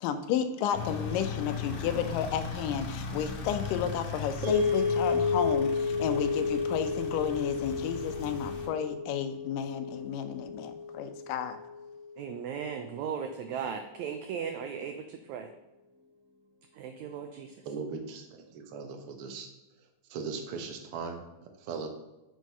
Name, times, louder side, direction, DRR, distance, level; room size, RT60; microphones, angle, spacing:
voice 1, 0.0-11.6, left 8 dB, 85° left, 9 dB, 2.3 m, -32 dB
sound 1, 0.7-8.7, left 6 dB, 65° left, 2.5 m, -38 dB
sound 2, 4.4-12.7, left 4 dB, 40° right, 1.9 m, -32 dB
voice 2, 12.2-15.5 16.7-17.5, right 7 dB, 80° right, 6 dB, 1.7 m, -37 dB
voice 3, 17.6-19.5 20.1-21.9, right 5 dB, 60° right, 4 dB, 1.6 m, -39 dB
6.4 x 6.3 x 5.4 m, 1.0 s
omnidirectional pair, 3.8 m